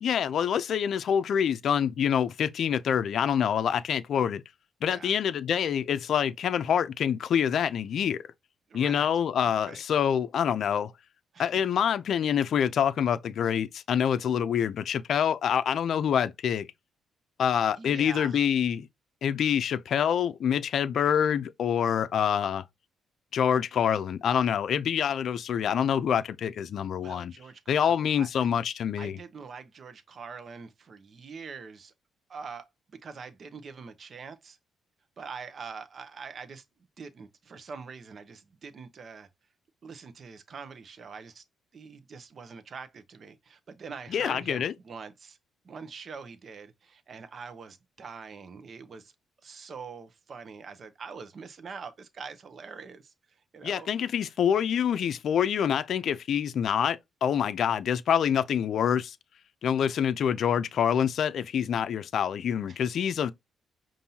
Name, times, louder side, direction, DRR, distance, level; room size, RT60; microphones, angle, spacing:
voice 1, 0.0-4.4 4.8-8.2 8.7-10.9 11.4-16.7 17.4-18.9 19.2-22.6 23.3-27.3 27.7-29.2 44.1-44.7 53.6-59.2 59.6-63.3, left 8 dB, 65° left, 0.4 m, -26 dB
voice 2, 4.8-5.1 8.7-9.1 9.4-9.8 11.3-11.7 17.8-18.4 27.0-28.3 29.0-31.9 32.3-34.6 35.2-36.6 37.0-39.3 39.8-41.4 41.7-45.4 45.6-49.1 49.4-53.9 62.7-62.9, right 5 dB, 45° right, 0.8 m, -44 dB
5.4 x 2.6 x 2.8 m
cardioid pair, 90°, 0 cm